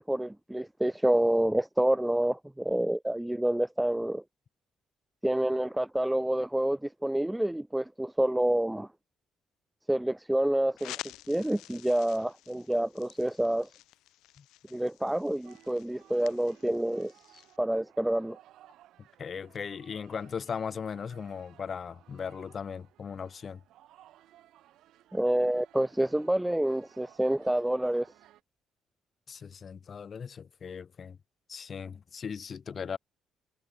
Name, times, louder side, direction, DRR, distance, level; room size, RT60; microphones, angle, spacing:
voice 1, 0.0-4.2 5.2-8.9 9.9-11.0 11.3-13.7 14.7-18.4 25.1-28.1, right 1 dB, 5° right, 0.3 m, -28 dB
sound 1, 10.8-17.6, left 16 dB, 85° left, 4.1 m, -49 dB
sound 2, 15.4-28.4, right 13 dB, 65° right, 7.4 m, -59 dB
voice 2, 19.2-23.6 29.3-31.2 31.5-33.0, left 6 dB, 30° left, 1.6 m, -38 dB
cardioid pair, 170°, 0 cm